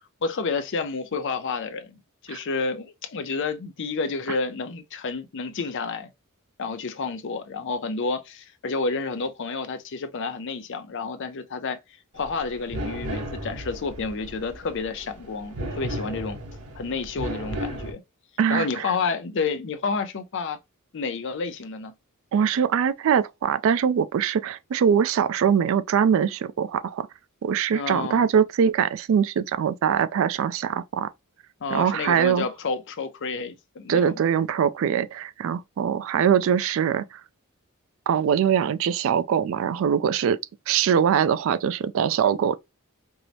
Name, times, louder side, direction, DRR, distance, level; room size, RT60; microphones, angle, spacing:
voice 1, 0.2-6.1 6.6-11.8 12.1-16.4 16.8-18.0 18.5-20.6 20.9-21.9 27.7-28.2 31.6-34.2, left 4 dB, 55° left, 0.5 m, -30 dB
sound 1, 12.2-17.9, right 1 dB, 75° right, 0.9 m, -35 dB
voice 2, 18.4-18.9 22.3-27.1 27.4-31.1 31.7-32.5 33.9-37.2 38.1-40.4 40.7-42.6, right 8 dB, 60° right, 0.3 m, -22 dB
4.6 x 2.0 x 2.6 m
head